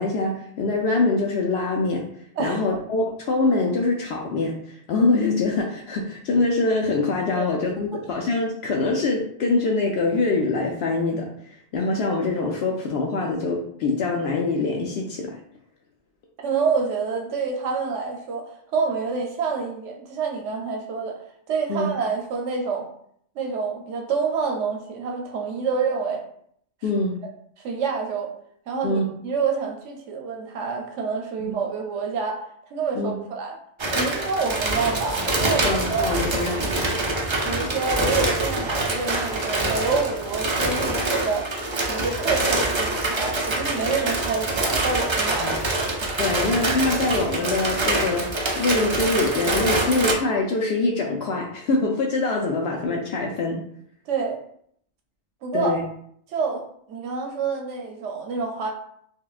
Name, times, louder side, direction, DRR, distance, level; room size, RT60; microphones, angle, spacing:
voice 1, 0.0-2.0 2.4-11.3 11.7-15.4 21.7-21.9 26.8-27.2 28.8-29.1 31.4-31.6 32.9-33.1 35.6-36.7 45.4-45.6 46.2-53.6 55.5-55.8, left 3 dB, 70° left, 0 dB, 0.8 m, -24 dB
voice 2, 16.4-21.2 21.5-22.9 23.4-26.2 27.6-28.3 28.7-32.4 32.7-33.6 33.9-36.0 37.4-41.5 41.9-45.8 54.1-54.4 55.4-55.8 56.3-56.6 56.9-58.7, right 5 dB, 90° right, 2 dB, 1.0 m, -27 dB
sound 1, 33.8-50.1, right 2 dB, 45° right, 0.3 m, -25 dB
5.3 x 2.2 x 2.4 m, 0.67 s
omnidirectional pair, 1.2 m